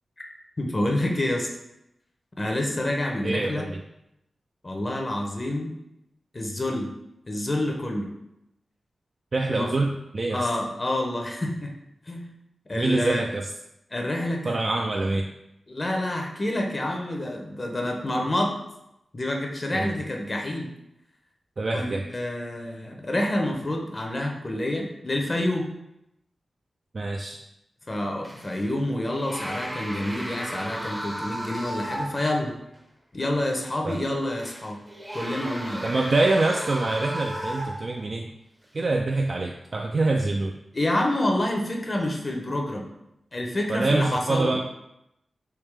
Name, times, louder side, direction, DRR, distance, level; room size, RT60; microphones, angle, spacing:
voice 1, 0.6-1.5 2.4-3.7 4.6-5.8 6.3-6.9 7.3-8.1 9.5-9.7 10.3-11.7 12.1-12.3 12.7-13.2 13.9-14.6 15.7-18.6 19.1-20.7 21.7-25.7 27.9-32.6 33.1-34.8 35.1-35.9 40.7-42.9 43.3-44.6, left 1 dB, 35° left, 1 dB, 0.6 m, -28 dB
voice 2, 3.2-3.8 9.3-10.5 12.7-13.5 14.4-15.3 19.7-19.9 21.6-22.0 26.9-27.4 33.8-34.0 35.8-38.3 38.7-40.5 43.7-44.6, right 2 dB, 50° right, 1 dB, 0.3 m, -25 dB
sound 1, 28.2-28.7 29.1-32.4 32.8-32.9 34.4-38.1 38.8-39.0, right 1 dB, 15° right, 0.6 m, -35 dB
3.6 x 2.8 x 3.1 m, 0.84 s
cardioid pair, 70°, 0 cm